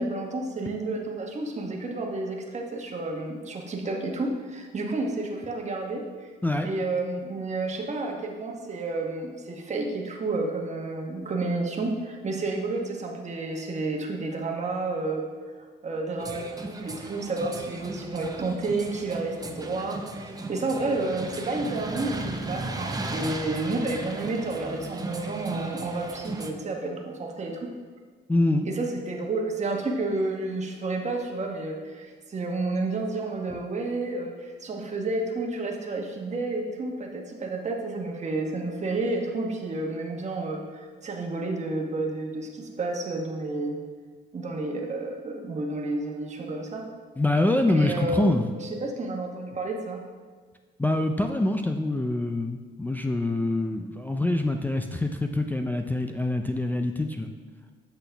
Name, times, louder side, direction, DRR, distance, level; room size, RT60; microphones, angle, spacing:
voice 1, 0.0-6.3 6.6-15.3 15.8-27.7 28.6-43.8 44.3-46.8 47.7-50.0, right 2 dB, 35° right, 1 dB, 1.1 m, -30 dB
sound 1, 16.2-26.5, right 2 dB, 20° right, 0.7 m, -36 dB
voice 2, 28.3-28.7 47.2-48.4 50.8-57.3, left 2 dB, 10° left, 4 dB, 0.4 m, -25 dB
8.0 x 6.0 x 3.4 m, 1.5 s
cardioid pair, 90°, 20 cm